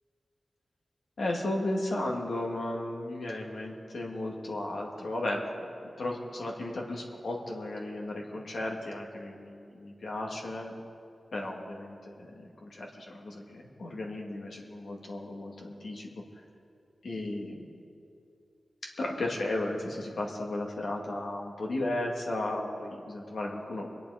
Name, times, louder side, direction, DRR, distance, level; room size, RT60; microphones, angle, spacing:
voice 1, 1.2-5.4 6.0-10.7 11.3-16.1 17.0-17.7 19.0-23.9, left 1 dB, 80° left, -1 dB, 1.9 m, -35 dB
23.5 x 10.0 x 4.9 m, 2.5 s
wide cardioid pair, 70°, 0 cm